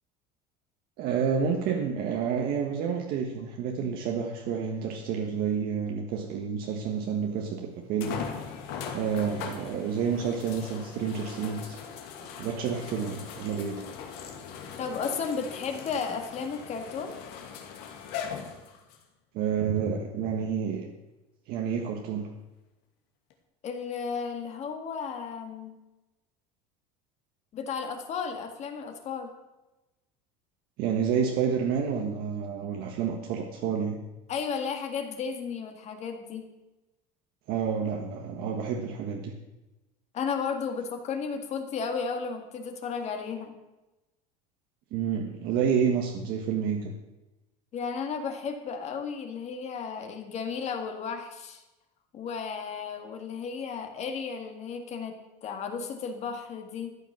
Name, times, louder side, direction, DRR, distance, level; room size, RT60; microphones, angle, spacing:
voice 1, 1.0-8.2 8.9-11.8 12.2-13.8 19.3-20.9 21.5-22.3 30.8-34.0 37.5-39.3 44.9-46.9, right 7 dB, 55° right, 2 dB, 1.5 m, -29 dB
sound 1, 6.9-7.0 8.0-19.0 19.8-19.9 23.3-23.4, left 7 dB, 70° left, 2.5 m, -40 dB
voice 2, 14.8-17.2 23.6-25.8 27.5-29.3 34.3-36.5 40.1-43.6 47.7-51.6 52.1-57.0, left 6 dB, 40° left, 5 dB, 2.0 m, -34 dB
13.5 x 9.0 x 6.1 m, 1.0 s
supercardioid pair, 135°, 18 cm